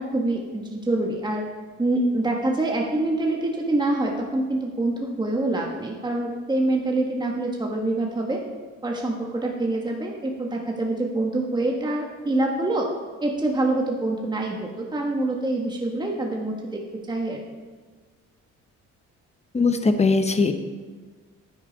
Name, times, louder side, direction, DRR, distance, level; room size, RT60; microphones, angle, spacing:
voice 1, 0.0-1.4 1.8-8.4 8.8-12.9 13.2-16.8 17.1-17.4, right 2 dB, 15° right, 0 dB, 1.3 m, -25 dB
voice 2, 19.5-20.5, left 3 dB, 20° left, 8 dB, 0.9 m, -20 dB
9.9 x 9.3 x 4.0 m, 1.4 s
cardioid pair, 90°, 30 cm